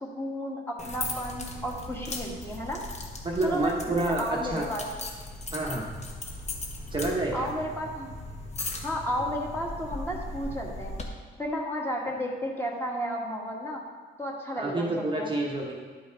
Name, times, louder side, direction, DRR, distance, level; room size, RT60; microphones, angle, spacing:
voice 1, 0.0-2.8 3.4-4.9 7.3-8.1 8.8-10.9 11.4-13.8 14.2-14.9 15.2-15.3, equal, 10° left, -2 dB, 1.7 m, -32 dB
sound 1, 0.8-11.0, left 2 dB, 35° left, 1.2 m, -38 dB
voice 2, 3.2-4.7 5.5-5.9 6.9-7.5 14.5-15.7, right 2 dB, 25° right, -2 dB, 1.0 m, -28 dB
10.5 x 5.3 x 4.6 m, 1.5 s
cardioid pair, 90°, 20 cm